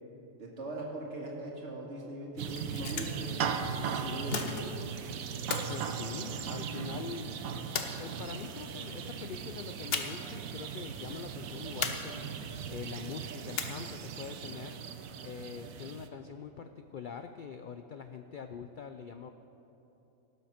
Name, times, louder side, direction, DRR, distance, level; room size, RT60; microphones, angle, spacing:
voice 1, 0.4-3.5 3.8-4.7, right 1 dB, 55° right, -2 dB, 2.2 m, -40 dB
sound 1, 2.3-3.3 4.3-5.0 5.5-6.8 7.7-8.5 9.9-10.4 10.6-10.8 11.8-12.5 13.6-14.1, left 5 dB, 50° left, 1.0 m, -37 dB
sound 2, 2.4-16.1, right 7 dB, 85° right, 1.2 m, -38 dB
voice 2, 5.5-7.3 8.0-12.3 12.7-14.8 15.2-19.3, left 6 dB, 90° left, 8 dB, 0.4 m, -44 dB
17.5 x 7.5 x 5.8 m, 3.0 s
omnidirectional pair, 1.4 m